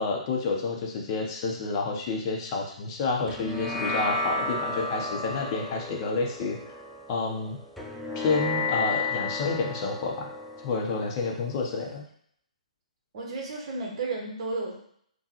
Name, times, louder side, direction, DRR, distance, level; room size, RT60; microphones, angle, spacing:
voice 1, 0.0-6.6 7.1-7.6 8.1-10.3 10.6-12.1, left 3 dB, 35° left, 0 dB, 0.7 m, -29 dB
sound 1, 3.3-12.0, left 3 dB, 5° left, 0.3 m, -33 dB
voice 2, 13.1-14.8, right 3 dB, 50° right, -1 dB, 1.0 m, -33 dB
3.6 x 2.3 x 2.9 m, 0.65 s
figure-of-eight pair, 135°, 4 cm